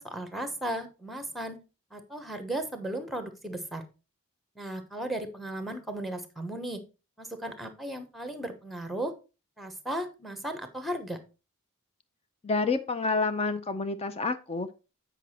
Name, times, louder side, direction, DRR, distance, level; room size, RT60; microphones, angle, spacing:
voice 1, 0.0-1.6 1.9-3.9 4.6-6.8 7.2-9.1 9.6-11.2, right 1 dB, ahead, 8 dB, 1.0 m, -35 dB
voice 2, 12.4-14.7, left 3 dB, 25° left, 10 dB, 0.5 m, -28 dB
8.2 x 5.0 x 4.3 m, 0.31 s
head